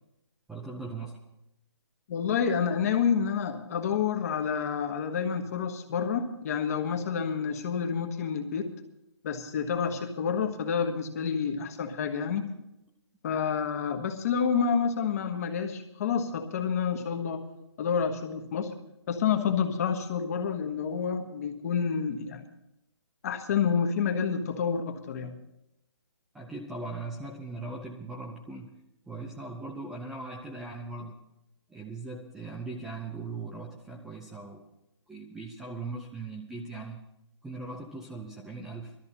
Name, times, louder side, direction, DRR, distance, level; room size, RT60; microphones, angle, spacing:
voice 1, 0.5-1.2 26.3-28.7 29.1-31.2 31.7-34.7 35.1-37.0 37.4-39.0, right 3 dB, 5° right, -2 dB, 0.6 m, -39 dB
voice 2, 2.1-8.7 9.2-12.5 13.2-17.5 17.8-18.7 19.1-22.5 23.2-25.3, left 6 dB, 35° left, 5 dB, 1.5 m, -29 dB
19.0 x 13.0 x 4.2 m, 0.86 s
hypercardioid pair, 165°, 15 cm